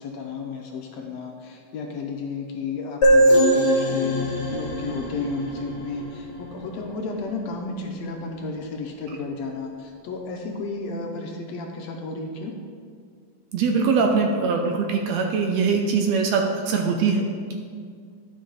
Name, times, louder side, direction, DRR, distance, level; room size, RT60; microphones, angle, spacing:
voice 1, 0.0-12.5, left 4 dB, 75° left, 2 dB, 1.8 m, -32 dB
sound 1, 3.0-6.6, equal, 45° left, 1.6 m, -21 dB
voice 2, 13.5-17.5, right 5 dB, 75° right, 3 dB, 1.7 m, -22 dB
11.5 x 5.4 x 4.0 m, 2.1 s
omnidirectional pair, 3.4 m